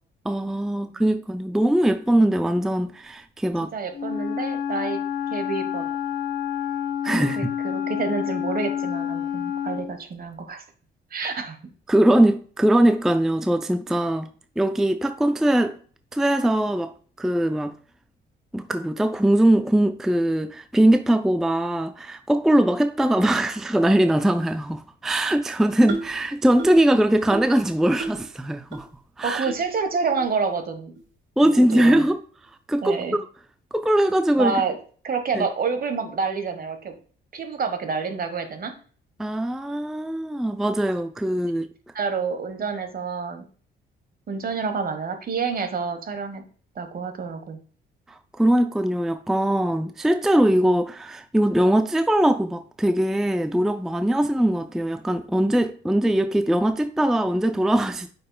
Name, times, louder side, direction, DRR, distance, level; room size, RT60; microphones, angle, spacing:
voice 1, 0.2-3.7 7.0-7.4 11.9-14.3 14.6-15.8 16.1-17.8 18.5-28.9 29.2-29.5 31.4-32.2 32.7-33.0 33.7-34.6 35.3-35.5 39.2-41.7 48.1-58.1, right 1 dB, ahead, 0.4 m, -21 dB
voice 2, 3.7-5.0 5.3-5.9 7.4-10.6 11.1-11.6 29.2-30.9 31.4-32.0 32.8-33.2 34.4-34.8 35.0-36.9 37.3-38.7 41.9-43.4 44.3-46.4 46.7-47.6, right 5 dB, 50° right, 1.3 m, -28 dB
Wind instrument woodwind instrument, 3.9-10.0, left 8 dB, 50° left, 0.9 m, -28 dB
sound 1, 25.9-26.2 26.6-26.9 27.3-27.6 28.0-28.3 28.7-28.8 29.5-29.6 30.2-30.3 31.0-31.1 31.7-31.9, right 3 dB, 75° right, 1.3 m, -32 dB
8.7 x 5.4 x 2.2 m
cardioid pair, 90°, 20 cm